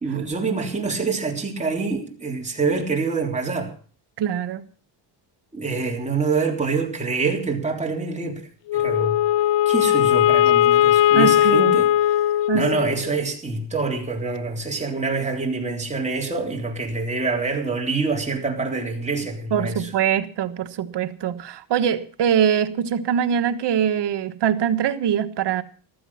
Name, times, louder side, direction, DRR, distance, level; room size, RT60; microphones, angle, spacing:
voice 1, 0.0-3.7 5.5-9.2 9.7-12.2 12.5-19.9, right 4 dB, 15° right, 3.8 m, -26 dB
voice 2, 4.2-4.6 11.1-11.8 12.5-12.6 19.5-25.6, right 9 dB, 65° right, 1.4 m, -23 dB
Wind instrument woodwind instrument, 8.7-13.1, left 12 dB, 75° left, 0.7 m, -18 dB
15.0 x 13.5 x 5.7 m
cardioid pair, 125°, 44 cm